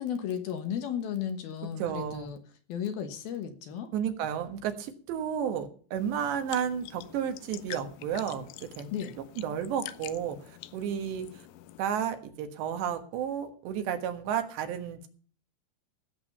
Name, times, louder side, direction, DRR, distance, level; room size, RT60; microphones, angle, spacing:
voice 1, 0.0-2.4 2.7-3.9 8.9-9.2, left 8 dB, 65° left, 8 dB, 2.9 m, -34 dB
voice 2, 1.8-2.4 3.9-8.9 9.4-10.4 10.7-11.3 11.8-15.1, right 8 dB, 80° right, 7 dB, 3.6 m, -32 dB
sound 1, 6.0-11.8, left 14 dB, 80° left, 2.9 m, -46 dB
17.0 x 7.9 x 5.4 m, 0.43 s
omnidirectional pair, 5.1 m